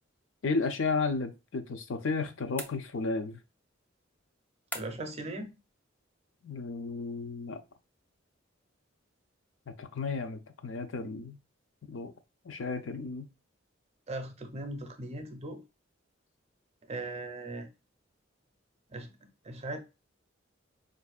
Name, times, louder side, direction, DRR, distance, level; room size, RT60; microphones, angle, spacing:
voice 1, 0.4-3.4 6.4-7.6 9.8-11.4 11.8-12.1 12.4-13.3, left 4 dB, 70° left, 0.5 m, -33 dB
sound 1, 2.6-3.3 4.7-5.2, left 1 dB, 10° left, 0.3 m, -42 dB
voice 2, 4.7-5.5 14.1-15.6 16.9-17.7 18.9-19.1 19.4-19.8, right 2 dB, 35° right, 0.6 m, -38 dB
4.4 x 2.6 x 2.3 m
head